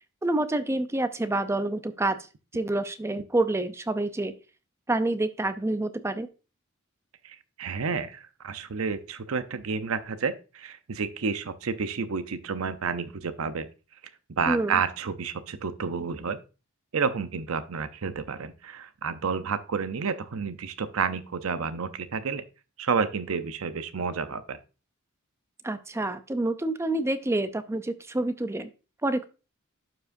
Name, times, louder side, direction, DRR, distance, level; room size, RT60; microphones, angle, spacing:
voice 1, 0.2-2.2 2.5-4.3 4.9-6.3 14.5-14.8 25.6-28.7 29.0-29.3, right 2 dB, 15° right, 11 dB, 0.5 m, -27 dB
voice 2, 7.2-13.7 14.4-16.4 16.9-22.4 22.8-24.6, right 5 dB, 80° right, 12 dB, 0.6 m, -30 dB
11.5 x 4.9 x 2.6 m, 0.32 s
head